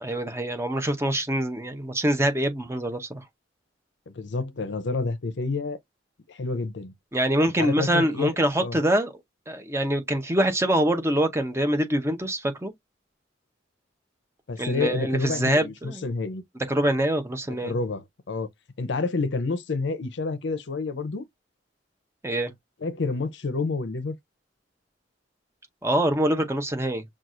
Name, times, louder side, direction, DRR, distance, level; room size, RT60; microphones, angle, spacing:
voice 1, 0.0-3.2 7.1-9.1 9.5-12.7 14.6-16.1 16.7-17.7 22.2-22.5 25.8-27.0, right 1 dB, 15° right, 0.8 m, -24 dB
voice 2, 4.1-5.8 6.3-6.9 7.4-8.3 8.6-8.8 14.5-16.4 17.6-18.5 18.8-21.2 22.8-24.2, left 3 dB, 70° left, 0.6 m, -29 dB
5.9 x 2.4 x 2.5 m
head